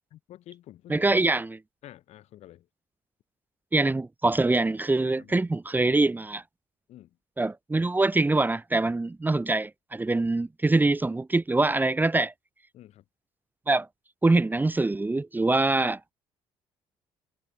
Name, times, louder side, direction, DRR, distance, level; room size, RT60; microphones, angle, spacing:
voice 1, 0.1-1.3 1.8-2.7 5.0-5.5 6.9-7.2 12.7-13.0, left 13 dB, 70° left, 7.2 m, -49 dB
voice 2, 0.9-1.6 3.7-6.4 7.4-12.3 13.7-13.9 14.2-16.0, right 2 dB, 15° right, 1.0 m, -24 dB
supercardioid pair, 75°, 11 cm